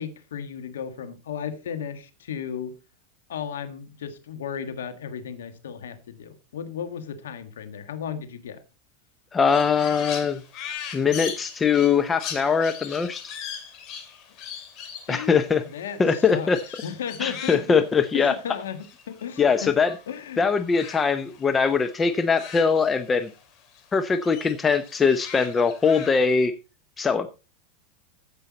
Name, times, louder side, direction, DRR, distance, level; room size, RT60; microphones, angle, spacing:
voice 1, 0.0-2.7 3.3-8.6 15.1-17.8 18.1-18.8 19.1-19.7 20.1-20.4, left 8 dB, 90° left, 9 dB, 1.5 m, -35 dB
voice 2, 9.3-10.4 10.9-13.2 15.1-15.6 16.0-16.6 17.2-18.3 19.4-19.9 20.4-23.3 23.9-26.5 27.0-27.3, left 5 dB, 20° left, 10 dB, 0.7 m, -21 dB
Crow, 9.5-20.2 20.4-23.4 23.7-26.4, left 8 dB, 45° left, 2.7 m, -40 dB
15.0 x 5.6 x 4.1 m, 0.31 s
supercardioid pair, 120°, 0 cm